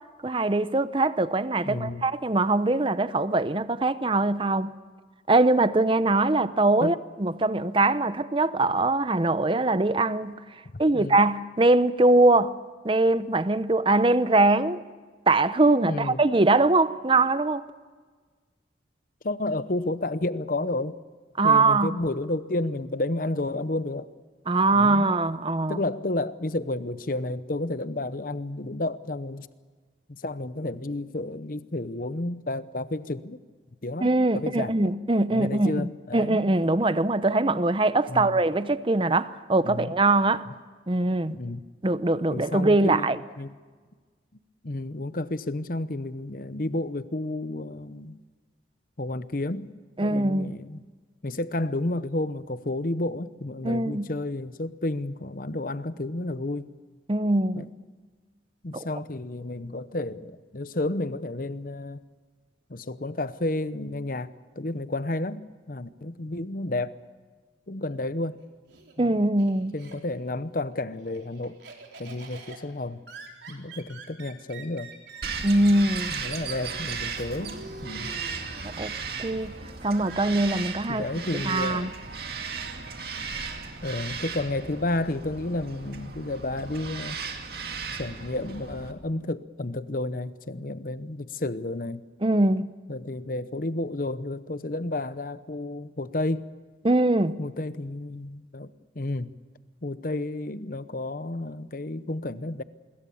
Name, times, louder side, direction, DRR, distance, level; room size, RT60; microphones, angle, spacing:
voice 1, 0.2-4.7 5.3-10.4 10.8-12.5 12.8-14.8 15.3-17.6 21.4-21.9 24.5-25.8 34.0-40.4 40.9-41.4 41.8-43.2 50.0-50.5 53.6-54.1 57.1-57.7 58.7-58.9 69.0-69.7 75.4-76.1 78.6-79.5 79.8-81.0 81.4-81.9 92.2-92.7 96.8-97.4, right 2 dB, 30° right, 0.7 m, -22 dB
voice 2, 1.6-2.1 6.8-7.0 10.9-11.2 15.8-16.2 19.2-21.0 21.4-24.1 24.7-25.1 25.7-29.5 30.1-33.4 33.8-34.9 35.3-36.4 38.1-38.4 39.6-39.9 41.3-41.6 42.3-43.6 44.6-48.2 49.0-49.7 50.0-50.8 51.2-56.7 57.5-57.7 58.6-62.0 62.7-67.0 67.7-68.4 69.0-69.1 69.7-71.6 72.0-73.0 73.5-74.9 76.1-78.1 80.9-82.0 83.8-87.2 88.0-92.0 92.9-96.5 97.4-99.3 99.8-102.6, left 2 dB, 50° left, 0.9 m, -31 dB
Laughter, 68.2-70.4 70.7-83.6, right 4 dB, 75° right, 4.0 m, -47 dB
Bird vocalization bird call bird song, 75.2-88.9, right 5 dB, 55° right, 2.2 m, -36 dB
26.0 x 22.0 x 7.1 m
head